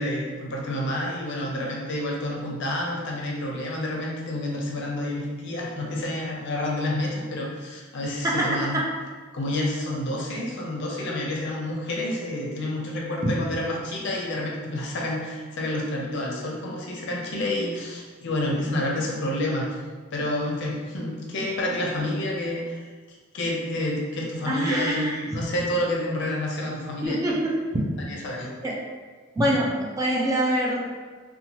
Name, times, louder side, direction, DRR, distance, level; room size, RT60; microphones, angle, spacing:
voice 1, 0.0-8.8 9.3-19.8 20.1-22.9 23.3-27.2 28.1-28.5, left 1 dB, 60° left, -2 dB, 0.5 m, -29 dB
voice 2, 8.2-8.8 24.5-25.2 27.0-27.8 28.6-28.8 29.4-30.8, right 1 dB, 15° right, -4 dB, 0.3 m, -24 dB
2.7 x 2.2 x 2.9 m, 1.4 s
head